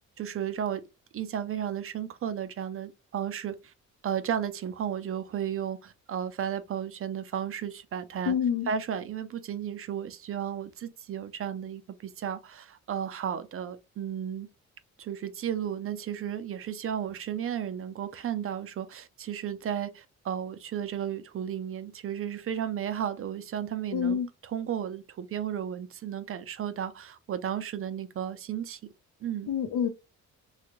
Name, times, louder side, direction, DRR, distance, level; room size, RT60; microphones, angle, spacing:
voice 1, 0.2-0.8 1.1-3.7 4.0-8.4 8.7-14.5 15.0-28.8 29.2-29.5, right 9 dB, 45° right, 0.5 m, -34 dB
voice 2, 8.3-8.7 23.9-24.3 29.5-29.9, left 7 dB, 70° left, 0.7 m, -27 dB
3.2 x 2.4 x 3.0 m
cardioid pair, 90°, 30 cm